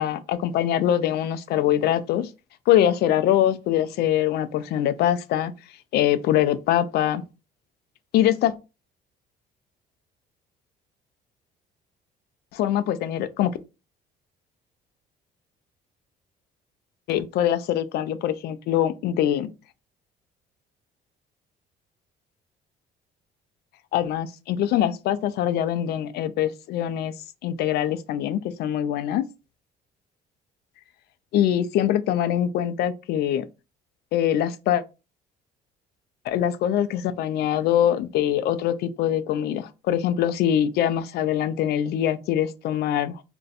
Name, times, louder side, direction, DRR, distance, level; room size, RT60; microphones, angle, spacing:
voice 1, 0.0-2.3 2.7-5.5 5.9-7.2 8.1-8.5 12.5-13.5 17.1-19.5 23.9-27.1 27.4-29.2 31.3-33.5 34.1-34.8 36.2-43.2, left 11 dB, 70° left, 0.4 m, -23 dB
2.5 x 2.2 x 3.9 m
cardioid pair, 110°, 17 cm